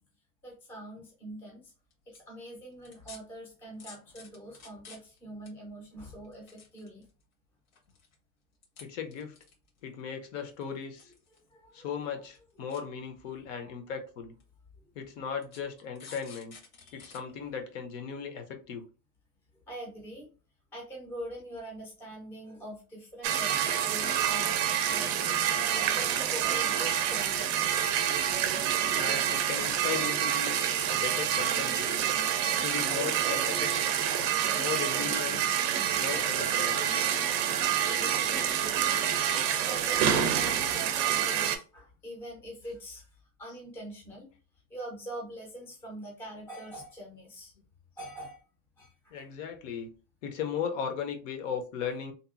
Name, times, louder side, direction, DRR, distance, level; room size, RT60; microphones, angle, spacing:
voice 1, 0.4-1.7 2.1-7.0 11.3-11.9 13.6-13.7 16.8-17.1 19.7-20.3 20.7-25.5 25.9-27.7 37.9-38.8 39.3-44.3 44.7-47.5 48.0-48.4 48.8-49.3, right 1 dB, 5° left, 0.5 m, -44 dB
sound 1, 1.9-2.2 2.9-3.2 3.8-5.2 5.5-5.6 6.2-7.2 7.7-8.1 8.6-8.8 9.1-9.8 10.6-11.4 11.7-11.8 12.2-12.4 12.7-12.8 13.6-13.7 14.4-14.5 15.4-17.2 17.6-17.7, left 5 dB, 90° left, 1.3 m, -50 dB
voice 2, 8.8-9.3 9.8-11.1 11.7-14.3 15.0-16.6 16.9-18.8 29.0-30.6 30.9-32.0 32.6-33.8 34.5-35.4 35.9-36.9 43.5-43.6 49.1-49.9 50.2-52.1, left 7 dB, 65° left, 0.7 m, -37 dB
sound 2, 23.2-41.6, right 9 dB, 55° right, 0.5 m, -27 dB
2.8 x 2.4 x 2.4 m
supercardioid pair, 170°, 41 cm